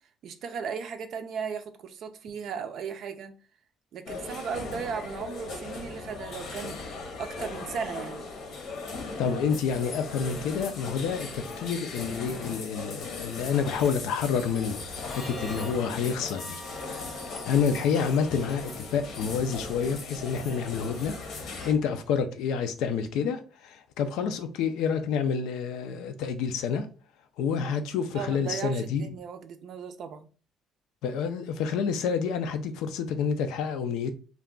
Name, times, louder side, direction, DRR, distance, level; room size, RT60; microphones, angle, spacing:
voice 1, 0.2-3.3 3.9-6.8 7.2-8.3 28.1-30.3, right 6 dB, 65° right, 0.4 m, -36 dB
sound 1, 4.1-21.7, left 3 dB, 70° left, 0.8 m, -38 dB
voice 2, 9.2-16.6 17.5-26.9 27.4-29.1 31.0-34.1, left 6 dB, 90° left, 0.4 m, -28 dB
Harmonica, 14.9-19.5, right 1 dB, ahead, 0.4 m, -48 dB
2.4 x 2.2 x 3.6 m
cardioid pair, 110°, 0 cm